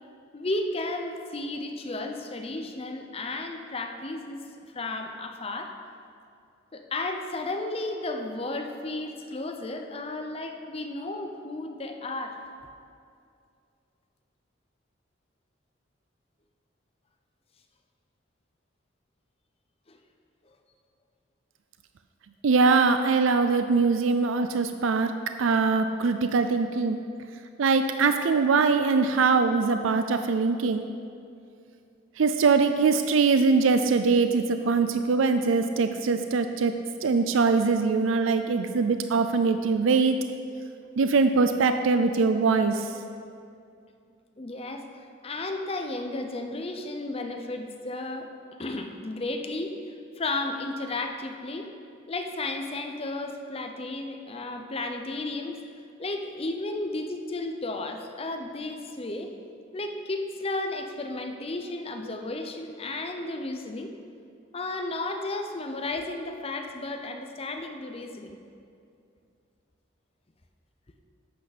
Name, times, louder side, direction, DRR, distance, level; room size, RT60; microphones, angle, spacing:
voice 1, 0.3-4.4 4.7-5.7 6.7-12.4 19.9-20.0 20.5-20.6 44.4-48.3 48.6-49.8 50.2-51.7 52.1-55.6 56.0-59.3 59.7-63.9 64.5-68.4, left 2 dB, 30° left, 5 dB, 0.7 m, -33 dB
voice 2, 22.4-25.1 25.4-27.0 27.6-30.8 32.2-36.7 37.0-40.2 41.0-42.9, right 4 dB, 85° right, 8 dB, 0.5 m, -22 dB
11.5 x 8.4 x 4.2 m, 2.4 s
head